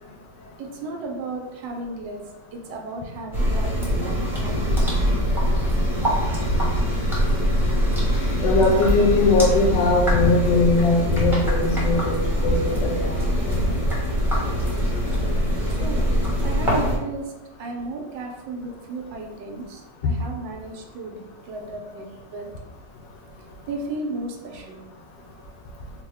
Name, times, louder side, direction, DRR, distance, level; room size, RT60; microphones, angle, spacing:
voice 1, 0.6-2.2 2.5-4.9 15.7-16.1 16.4-17.3 17.6-22.5 23.7-24.8, right 2 dB, 90° right, 2 dB, 1.3 m, -34 dB
sound 1, 3.3-17.0, equal, ahead, 0.6 m, -23 dB
voice 2, 8.4-13.2 13.5-13.7, left 3 dB, 80° left, 1 dB, 1.4 m, -20 dB
4.4 x 2.1 x 3.4 m, 1.0 s
omnidirectional pair, 1.9 m